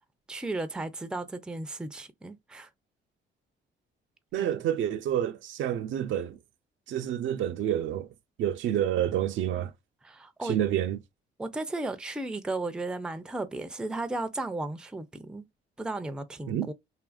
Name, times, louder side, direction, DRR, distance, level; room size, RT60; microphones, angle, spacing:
voice 1, 0.3-2.7 4.4-4.6 10.0-10.6 11.4-15.4 15.8-16.7, right 2 dB, 5° right, 0.4 m, -35 dB
voice 2, 4.3-6.4 6.9-8.1 8.4-9.7 10.4-11.0 16.5-16.7, right 10 dB, 75° right, 0.4 m, -28 dB
2.8 x 2.4 x 2.3 m
cardioid pair, 90°, 20 cm